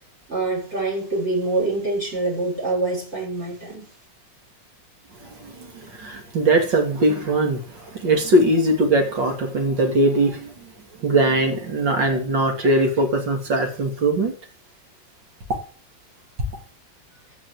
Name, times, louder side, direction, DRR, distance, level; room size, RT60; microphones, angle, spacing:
voice 1, 0.3-3.9, right 2 dB, 35° right, 7.1 m, -25 dB
voice 2, 6.0-7.6 7.9-10.5 11.0-14.3, right 1 dB, 80° right, 3.4 m, -20 dB
14.5 x 6.2 x 8.0 m
omnidirectional pair, 2.0 m